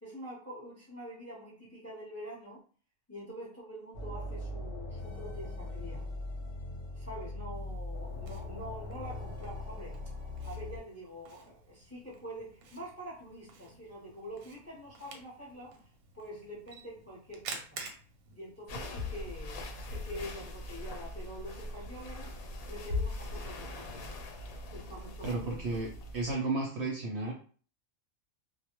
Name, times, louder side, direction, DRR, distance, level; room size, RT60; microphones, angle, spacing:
voice 1, 0.0-2.6 3.1-6.1 6.9-10.0 10.4-15.9 16.1-17.8 18.3-22.3 22.7-24.1 24.7-25.8, equal, 20° left, -4 dB, 0.5 m, -45 dB
sound 1, 3.9-10.8, left 2 dB, 50° left, 0.8 m, -40 dB
Camera, 7.5-19.5, right 4 dB, 90° right, 1.0 m, -51 dB
sound 2, 18.7-26.3, left 2 dB, 90° left, 1.1 m, -40 dB
voice 2, 25.2-27.3, right 3 dB, 65° right, -1 dB, 0.7 m, -33 dB
2.3 x 2.1 x 2.9 m, 0.41 s
omnidirectional pair, 1.5 m